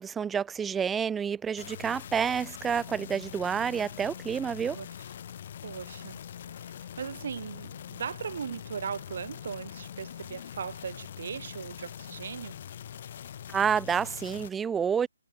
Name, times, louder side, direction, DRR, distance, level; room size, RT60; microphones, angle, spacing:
voice 1, 0.0-4.8 13.5-15.1, right 7 dB, 10° right, 1.5 m, -29 dB
sound 1, 1.6-14.5, left 9 dB, 40° left, 2.5 m, -43 dB
voice 2, 5.6-6.2 7.0-12.6, right 7 dB, 45° right, 3.6 m, -38 dB
figure-of-eight pair, 145°, 0 cm